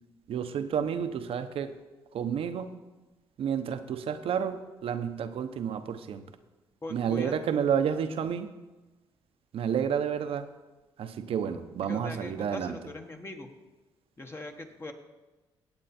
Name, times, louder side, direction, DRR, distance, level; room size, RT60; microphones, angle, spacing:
voice 1, 0.3-1.7 2.1-2.7 3.4-6.2 6.9-8.5 9.5-10.5 11.0-12.8, right 8 dB, 65° right, 10 dB, 0.9 m, -30 dB
voice 2, 6.8-7.4 11.9-13.5 14.2-14.9, left 2 dB, 25° left, 4 dB, 1.4 m, -40 dB
17.0 x 8.1 x 4.3 m, 1.2 s
supercardioid pair, 75°, 10 cm